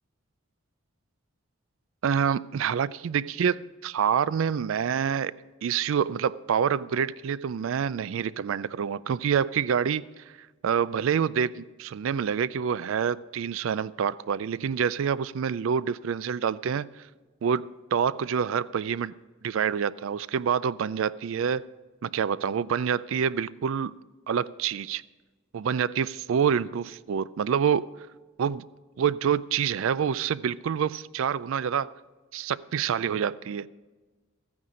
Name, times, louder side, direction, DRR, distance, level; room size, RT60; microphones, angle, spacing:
voice 1, 2.0-5.3 5.6-10.1 10.6-16.9 17.4-19.1 19.4-21.7 22.0-24.0 24.3-25.0 25.5-27.9 28.4-28.6 29.0-31.9 32.3-33.7, right 7 dB, 70° right, 0.3 m, -27 dB
14.5 x 9.6 x 5.0 m
head